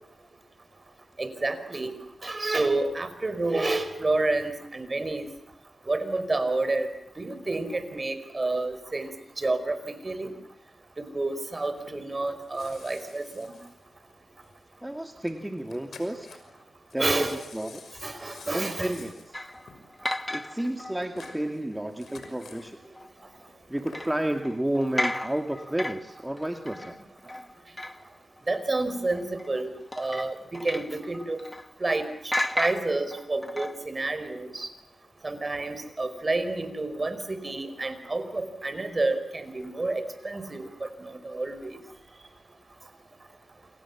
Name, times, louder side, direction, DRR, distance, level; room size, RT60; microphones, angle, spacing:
voice 1, 1.2-1.9 2.2-5.3 5.9-6.9 7.2-9.1 9.4-9.8 10.0-10.3 11.0-13.5 17.0-17.4 18.0-18.9 28.5-31.4 31.8-34.7 35.2-41.8, right 2 dB, 35° right, 11 dB, 5.2 m, -29 dB
sound 1, 11.8-14.5 14.8-14.9 15.3-15.4 15.6-16.6 16.9-22.7 23.5-24.2 24.7-24.8, left 5 dB, 80° left, 5.8 m, -49 dB
voice 2, 14.8-16.4 16.9-17.3 17.5-18.1 18.5-19.4 20.1-22.8 23.7-27.0, right 1 dB, 10° right, 5 dB, 2.2 m, -31 dB
sound 2, 19.3-21.5 22.1-22.6 22.9-23.1 23.9-28.2 28.5-28.6 29.0-29.5 29.9-32.0 32.3-33.9, left 1 dB, 15° left, 1.4 m, -34 dB
28.5 x 28.5 x 7.4 m, 0.75 s
cardioid pair, 60°, 0 cm